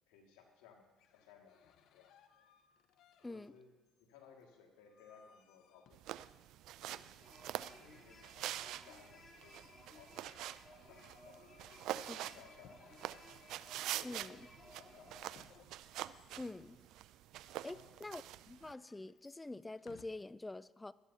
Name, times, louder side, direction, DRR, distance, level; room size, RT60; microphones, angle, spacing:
voice 1, 0.1-2.5 3.3-3.7 4.0-6.3 6.8-7.2 7.5-9.6 9.9-10.4 10.7-13.3 13.9-15.4 17.6-17.9, left 6 dB, 90° left, 2.1 m, -62 dB
sound 1, 0.8-3.6 3.9-6.5 7.5-14.1 15.2-17.7 18.5-20.1, left 8 dB, 70° left, 0.9 m, -68 dB
sound 2, 5.9-18.7, right 13 dB, 75° right, 0.4 m, -46 dB
sound 3, 7.2-15.4, left 2 dB, 40° left, 3.1 m, -60 dB
voice 2, 14.0-14.4 16.4-16.8 17.6-18.2 18.5-20.9, left 2 dB, 15° left, 0.4 m, -46 dB
17.5 x 12.5 x 2.8 m
supercardioid pair, 75°, 0 cm